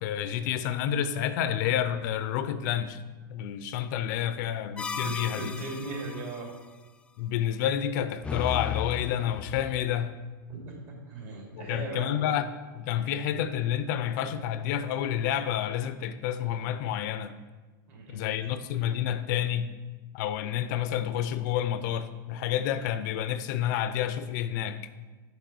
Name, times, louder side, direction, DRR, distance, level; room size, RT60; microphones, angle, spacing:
voice 1, 0.0-3.0 3.3-5.5 7.2-10.2 11.5-12.5 12.7-17.3 18.1-19.7 20.1-24.8, left 10 dB, 60° left, 12 dB, 0.5 m, -29 dB
sound 1, 4.8-6.4 8.2-9.8, left 6 dB, 10° left, 0.3 m, -35 dB
voice 2, 5.3-6.5 10.5-12.1 17.9-18.3, right 3 dB, 50° right, -2 dB, 3.0 m, -38 dB
6.1 x 5.3 x 6.8 m, 1.2 s
hypercardioid pair, 125°, 11 cm